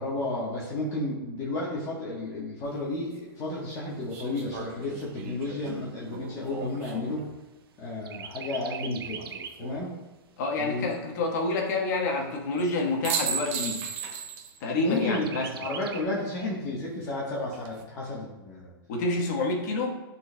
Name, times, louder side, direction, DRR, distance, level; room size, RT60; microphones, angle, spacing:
voice 1, 0.0-7.2 7.8-9.2 9.6-9.9 10.6-10.9 14.8-15.3 15.5-18.7, left 2 dB, 25° left, -5 dB, 1.1 m, -32 dB
sound 1, 2.6-2.7 4.1-7.3 9.1-9.8 12.6-12.7 13.0-14.6 14.9-15.0 17.3-17.8, right 6 dB, 40° right, 0.8 m, -36 dB
Chirp tweet, 3.9-7.7 8.0-9.7 10.2-10.3 10.6-11.6 12.2-12.3 12.6-12.7 13.2-13.7 15.0-16.0, right 7 dB, 75° right, 0.6 m, -43 dB
voice 2, 10.4-13.8 14.6-15.5 18.9-20.0, left 2 dB, 45° left, 1 dB, 1.2 m, -28 dB
11.0 x 4.2 x 2.2 m, 1.1 s
hypercardioid pair, 160°, 13 cm